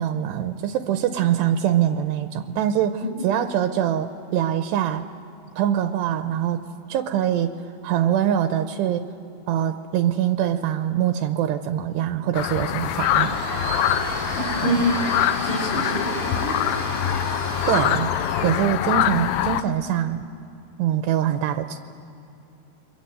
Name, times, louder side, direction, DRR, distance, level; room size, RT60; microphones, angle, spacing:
voice 1, 0.0-5.1 5.6-6.6 6.9-7.5 7.8-9.1 9.5-13.4 14.8-14.9 17.7-18.1 18.4-20.3 20.8-21.8, right 10 dB, 80° right, 8 dB, 2.8 m, -23 dB
sound 1, 12.3-19.6, left 11 dB, 85° left, 2.0 m, -24 dB
Domestic sounds home sounds, 12.8-18.7, right 4 dB, 55° right, 1.4 m, -33 dB
voice 2, 14.4-16.6, equal, 50° left, -8 dB, 5.6 m, -26 dB
29.5 x 24.0 x 7.9 m, 2.7 s
omnidirectional pair, 5.1 m